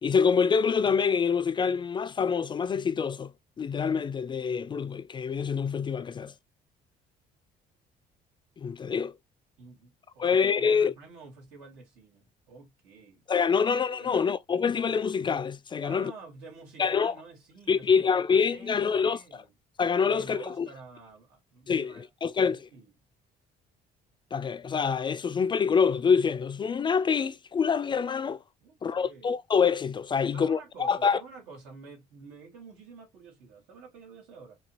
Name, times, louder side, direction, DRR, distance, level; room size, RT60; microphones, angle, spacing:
voice 1, 0.0-3.3 3.6-6.3 8.6-9.1 10.2-10.9 13.3-16.1 16.8-17.1 17.7-19.4 19.8-20.7 21.7-22.6 24.3-28.4 28.8-31.2, left 6 dB, 30° left, 0.3 m, -26 dB
voice 2, 9.6-13.3 13.5-13.6 14.0-14.2 15.8-19.5 20.0-22.9 28.6-28.8 29.0-29.4 30.2-34.6, right 4 dB, 90° right, 2.3 m, -49 dB
5.4 x 2.3 x 2.7 m
cardioid pair, 110°, 17 cm